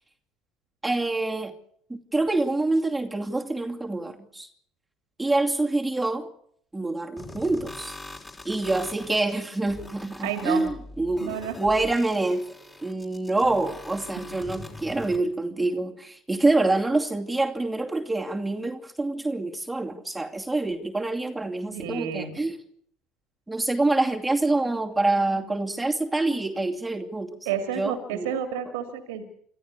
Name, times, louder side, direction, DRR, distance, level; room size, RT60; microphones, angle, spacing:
voice 1, 0.8-1.5 1.9-4.5 5.2-6.3 6.7-8.0 8.4-12.4 12.8-22.6 23.5-27.4 27.7-28.3, right 2 dB, 10° right, 1 dB, 2.6 m, -26 dB
sound 1, 7.2-15.2, left 2 dB, 15° left, 4.9 m, -43 dB
voice 2, 10.2-10.6 11.2-11.6 14.2-14.3 21.7-22.4 27.5-29.2, right 8 dB, 85° right, 7 dB, 2.5 m, -30 dB
26.5 x 14.0 x 8.5 m, 0.65 s
hypercardioid pair, 80°, 0 cm